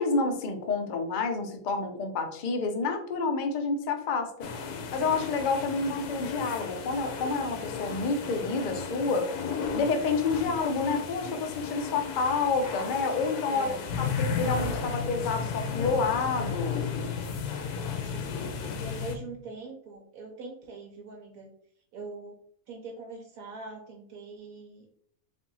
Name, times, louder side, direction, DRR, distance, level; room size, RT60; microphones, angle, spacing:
voice 1, 0.0-4.5 4.9-9.3 9.7-16.8, left 4 dB, 65° left, 5 dB, 0.4 m, -29 dB
sound 1, 4.4-19.2, left 5 dB, 90° left, 1.1 m, -34 dB
voice 2, 13.5-13.8 18.0-21.5 21.9-22.3 22.7-24.9, right 3 dB, 75° right, 1 dB, 1.1 m, -42 dB
3.6 x 2.6 x 3.9 m, 0.66 s
omnidirectional pair, 1.6 m